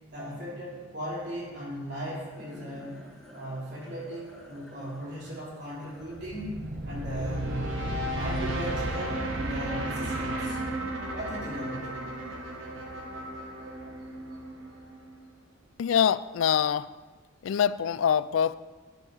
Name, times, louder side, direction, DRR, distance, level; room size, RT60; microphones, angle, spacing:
voice 1, 0.1-3.0 3.3-7.6 8.2-10.6 11.1-12.0, equal, 55° right, -6 dB, 3.8 m, -37 dB
sound 1, 1.9-12.4, left 1 dB, 5° left, 1.4 m, -52 dB
sound 2, 6.0-15.1, right 1 dB, 75° right, 1.4 m, -34 dB
voice 2, 15.8-16.9 17.4-18.6, left 8 dB, 70° left, 16 dB, 0.3 m, -24 dB
12.0 x 5.6 x 6.2 m, 1.3 s
head